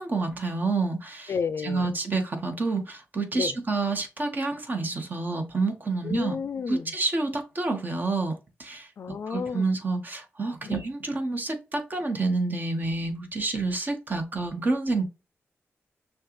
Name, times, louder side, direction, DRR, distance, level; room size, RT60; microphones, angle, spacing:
voice 1, 0.0-1.3 1.6-6.4 6.7-8.3 8.6-8.9 9.3-15.0, right 3 dB, 40° right, 1.4 m, -28 dB
voice 2, 1.3-2.0 3.3-3.6 6.0-6.9 9.0-9.7 10.6-10.8, left 6 dB, 65° left, 0.4 m, -32 dB
6.4 x 2.4 x 3.1 m
wide cardioid pair, 95°, 5 cm